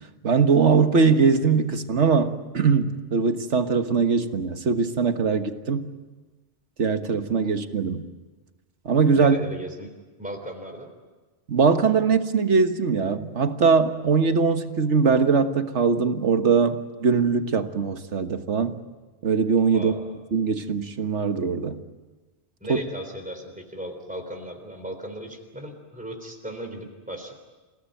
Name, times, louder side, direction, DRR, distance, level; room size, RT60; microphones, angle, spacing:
voice 1, 0.2-5.9 6.8-8.0 8.9-9.4 11.5-18.8 19.2-19.9 20.3-21.8 22.7-22.8, right 5 dB, 80° right, 8 dB, 1.7 m, -21 dB
voice 2, 9.1-9.9 10.2-10.9 19.7-20.1 22.6-27.3, right 1 dB, 5° right, 3 dB, 3.6 m, -36 dB
29.0 x 18.0 x 9.2 m, 1.2 s
omnidirectional pair, 1.2 m